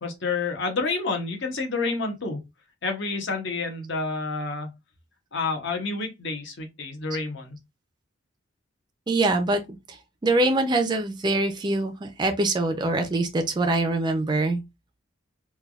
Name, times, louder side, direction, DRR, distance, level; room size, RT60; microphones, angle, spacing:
voice 1, 0.0-2.4 2.8-4.7 5.3-7.6, left 3 dB, 60° left, 0.8 m, -29 dB
voice 2, 9.1-9.6 9.9-10.0 10.2-14.6, right 2 dB, 20° right, 0.4 m, -24 dB
3.3 x 2.2 x 2.3 m
head